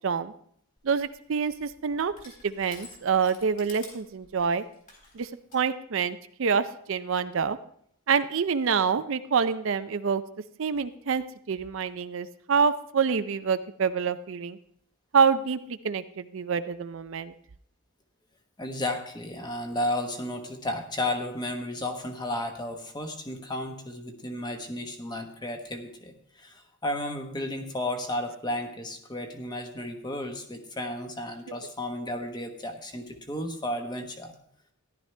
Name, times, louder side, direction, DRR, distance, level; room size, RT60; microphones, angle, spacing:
Crushing, 0.8-5.7, left 3 dB, 35° left, 3.7 m, -51 dB
voice 1, 0.8-2.1 2.4-4.6 5.1-7.6 8.1-10.2 10.6-14.6 15.1-17.3, right 6 dB, 60° right, 12 dB, 0.4 m, -26 dB
voice 2, 18.6-34.3, left 1 dB, 20° left, 4 dB, 1.1 m, -33 dB
14.0 x 11.5 x 3.3 m, 0.66 s
head